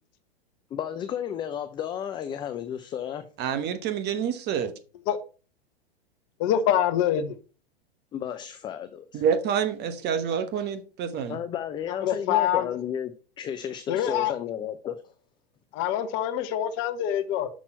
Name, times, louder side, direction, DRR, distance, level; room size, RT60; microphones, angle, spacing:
voice 1, 0.7-3.2 8.1-9.2 11.3-15.1, left 9 dB, 15° left, 0.4 m, -33 dB
voice 2, 3.4-4.7 9.1-11.4, right 7 dB, 30° right, 1.1 m, -27 dB
voice 3, 6.4-7.3 12.0-12.6 13.9-14.3 15.7-17.5, left 10 dB, 40° left, 1.0 m, -25 dB
6.2 x 5.6 x 4.5 m
hypercardioid pair, 110°, 31 cm